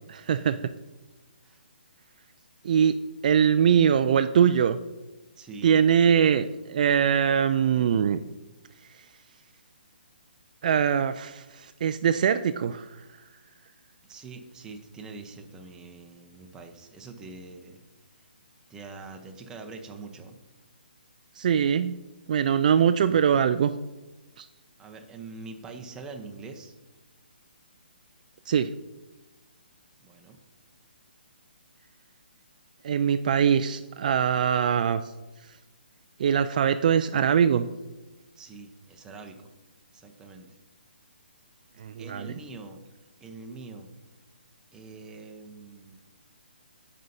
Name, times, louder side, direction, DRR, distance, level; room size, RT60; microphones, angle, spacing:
voice 1, 0.1-0.6 2.6-3.0 3.2-4.8 5.6-8.2 10.6-13.0 21.4-21.9 22.3-23.7 24.4-24.5 28.5-28.7 32.8-35.0 36.2-37.7 41.8-42.3, right 8 dB, 50° right, 10 dB, 0.3 m, -22 dB
voice 2, 5.4-5.8 14.0-17.8 18.7-20.4 24.8-26.7 30.0-30.4 38.4-39.5 39.9-40.5 42.0-42.8 43.2-43.9 44.7-46.0, right 3 dB, 10° right, 3 dB, 0.8 m, -44 dB
14.0 x 5.5 x 2.7 m, 1.1 s
figure-of-eight pair, 140°, 6 cm